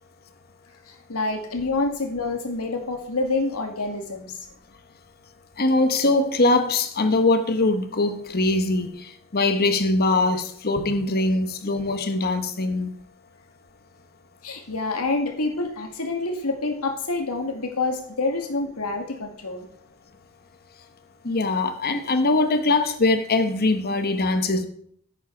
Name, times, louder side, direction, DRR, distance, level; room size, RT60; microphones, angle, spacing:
voice 1, 0.9-4.4 14.4-19.7, left 3 dB, 80° left, 2.0 m, -27 dB
voice 2, 5.6-12.9 21.2-24.7, left 2 dB, 45° left, 1.2 m, -22 dB
10.5 x 8.7 x 4.6 m
head